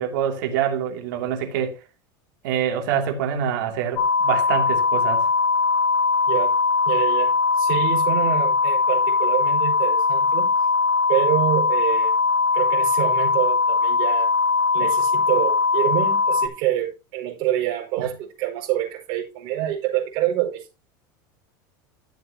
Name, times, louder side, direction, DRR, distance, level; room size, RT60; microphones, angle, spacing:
voice 1, 0.0-1.8 2.4-5.2 18.0-18.1, right 8 dB, 75° right, 2.9 m, -25 dB
sound 1, 4.0-16.5, left 4 dB, 85° left, 1.3 m, -20 dB
voice 2, 6.3-6.6 6.8-10.5 11.1-12.1 12.5-14.3 14.7-20.7, right 13 dB, 55° right, 4.8 m, -26 dB
13.0 x 8.0 x 3.0 m
supercardioid pair, 145°, 11 cm